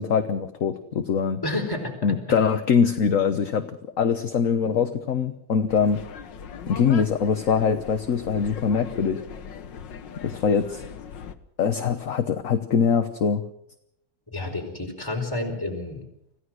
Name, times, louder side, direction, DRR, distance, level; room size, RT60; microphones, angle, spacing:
voice 1, 0.0-1.4 2.0-3.7 4.0-6.0 6.7-9.2 10.2-10.8 11.6-13.4, left 6 dB, 50° left, 8 dB, 1.4 m, -23 dB
voice 2, 1.4-2.2 14.3-16.0, left 2 dB, 10° left, 1 dB, 4.7 m, -30 dB
sound 1, 5.7-11.4, left 7 dB, 80° left, 1.8 m, -39 dB
26.0 x 16.5 x 6.4 m, 0.77 s
omnidirectional pair, 1.9 m